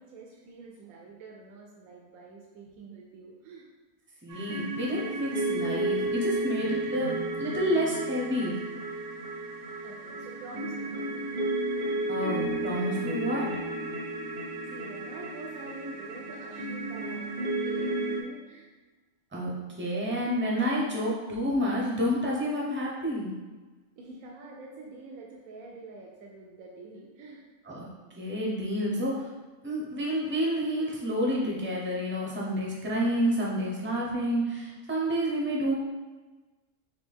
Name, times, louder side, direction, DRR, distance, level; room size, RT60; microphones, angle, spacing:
voice 1, 0.0-3.7 9.8-11.3 14.7-18.7 24.0-27.4, right 3 dB, 85° right, -1 dB, 1.0 m, -46 dB
voice 2, 4.2-8.5 12.1-13.5 19.3-23.3 27.7-27.9 28.2-29.3 29.6-35.7, equal, 10° right, -3 dB, 0.5 m, -29 dB
sound 1, 4.3-18.2, right 2 dB, 55° right, 0.7 m, -32 dB
4.0 x 3.5 x 3.4 m, 1.2 s
omnidirectional pair, 1.5 m